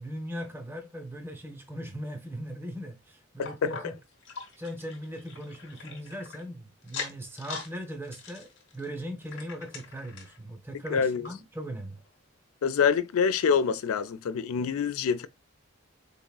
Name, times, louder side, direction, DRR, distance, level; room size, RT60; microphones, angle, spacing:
voice 1, 0.0-3.9 4.6-12.0, equal, 10° right, 0.6 m, -39 dB
voice 2, 3.4-3.9 10.9-11.3 12.6-15.3, left 6 dB, 80° left, 0.4 m, -26 dB
sound 1, 3.4-6.4 6.8-7.7 8.0-10.4 10.9-11.0 11.2-11.3 12.0-12.1, left 5 dB, 55° left, 0.9 m, -42 dB
3.8 x 3.5 x 2.3 m
head